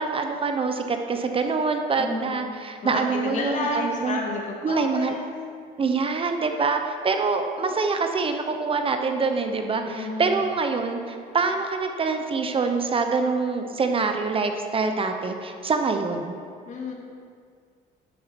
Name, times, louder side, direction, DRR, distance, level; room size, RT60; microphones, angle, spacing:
voice 1, 0.0-4.2 4.6-5.1 5.8-16.4, right 4 dB, 30° right, 5 dB, 0.8 m, -25 dB
voice 2, 2.0-2.5 2.8-5.3 9.9-10.4 16.6-16.9, left 3 dB, 45° left, -1 dB, 2.3 m, -31 dB
10.0 x 5.4 x 6.9 m, 2.2 s
cardioid pair, 110°, 17 cm